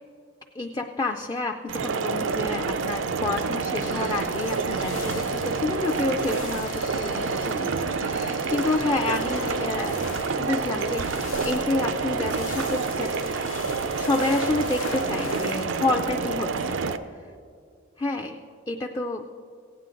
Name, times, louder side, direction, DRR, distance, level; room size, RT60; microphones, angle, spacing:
voice 1, 0.5-13.1 14.0-16.8 18.0-18.4 18.7-19.2, left 2 dB, 20° left, 2 dB, 0.3 m, -29 dB
sound 1, 1.7-17.0, right 4 dB, 85° right, 0.5 m, -28 dB
sound 2, 3.7-15.7, left 6 dB, 85° left, 0.4 m, -39 dB
16.5 x 8.9 x 3.8 m, 2.2 s
head